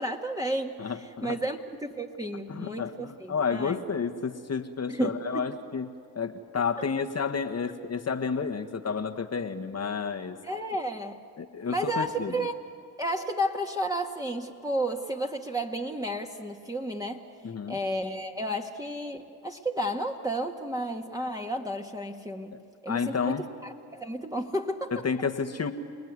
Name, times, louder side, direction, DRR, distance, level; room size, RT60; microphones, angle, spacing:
voice 1, 0.0-3.8 4.9-5.6 10.4-11.2 11.7-12.5 13.0-17.2 17.7-23.4 23.6-24.9, right 1 dB, 10° right, 1 dB, 1.8 m, -32 dB
voice 2, 0.8-1.4 2.5-10.4 11.4-12.3 17.4-17.8 22.5-22.6 22.9-23.5 24.9-25.7, left 5 dB, 30° left, 5 dB, 1.5 m, -31 dB
29.0 x 19.5 x 9.7 m, 2.3 s
supercardioid pair, 65°, 47 cm